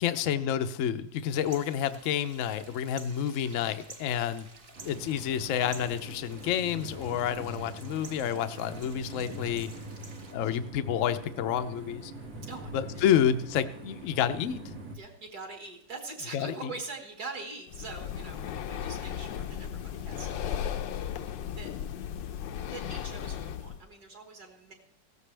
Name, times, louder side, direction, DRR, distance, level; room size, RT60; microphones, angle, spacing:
voice 1, 0.0-4.4 4.8-9.7 10.3-12.1 12.7-14.6 16.3-16.5, left 9 dB, 65° left, 10 dB, 0.8 m, -29 dB
sound 1, 1.3-10.3, right 3 dB, 35° right, 1.1 m, -51 dB
sound 2, 4.7-15.0, right 1 dB, 85° right, 2.5 m, -43 dB
voice 2, 9.8-10.5 12.5-13.3 13.7-13.8 14.9-21.7 22.7-24.7, right 3 dB, 55° right, 3 dB, 2.4 m, -44 dB
Breathing, 17.7-23.8, left 9 dB, 80° left, 1.3 m, -36 dB
16.0 x 13.5 x 3.3 m, 0.72 s
omnidirectional pair, 2.0 m